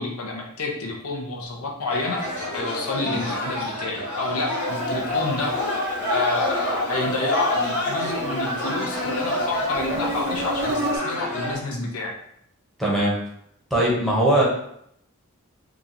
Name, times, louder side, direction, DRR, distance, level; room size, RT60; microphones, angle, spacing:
voice 1, 0.0-2.2 2.5-5.5 6.1-12.1, left 3 dB, 80° left, 0 dB, 0.7 m, -29 dB
sound 1, 1.9-11.5, left 1 dB, 35° left, 1.1 m, -28 dB
Insect, 4.7-11.0, right 1 dB, 50° right, 0.6 m, -34 dB
voice 2, 12.8-13.1 13.7-14.4, right 1 dB, ahead, -6 dB, 0.9 m, -20 dB
3.0 x 2.3 x 3.9 m, 0.72 s
head